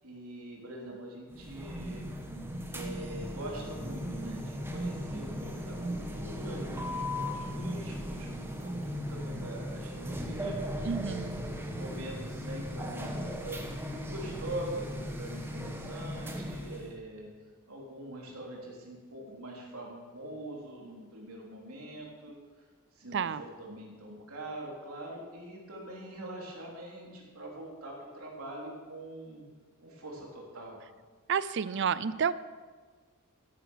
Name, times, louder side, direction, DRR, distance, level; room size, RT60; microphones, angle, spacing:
voice 1, 0.0-2.0 2.7-10.6 11.8-17.3 17.7-22.4 22.9-29.4 29.8-30.8, right 1 dB, 80° right, -2 dB, 3.5 m, -43 dB
sound 1, 1.3-16.9, equal, 10° right, 1.2 m, -37 dB
voice 2, 10.9-11.4 23.1-23.4 31.3-32.3, right 7 dB, 55° right, 17 dB, 0.5 m, -30 dB
13.5 x 9.8 x 6.3 m, 1.5 s
head